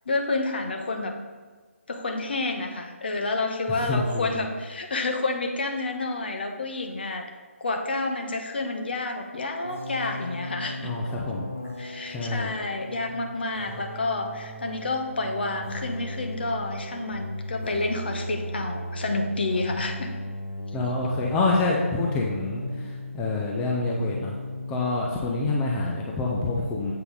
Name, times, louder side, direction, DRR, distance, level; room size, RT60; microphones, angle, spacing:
voice 1, 0.1-1.1 1.9-7.3 7.6-10.9 11.8-20.1, left 2 dB, 45° left, 4 dB, 1.1 m, -29 dB
voice 2, 3.7-4.4 10.8-11.5 12.1-12.5 20.7-24.4 24.7-26.9, left 3 dB, 10° left, -2 dB, 0.6 m, -27 dB
sound 1, 9.6-23.4 23.6-24.8, left 1 dB, 70° left, 1.8 m, -37 dB
7.8 x 5.5 x 5.4 m, 1.4 s
figure-of-eight pair, 150°, 7 cm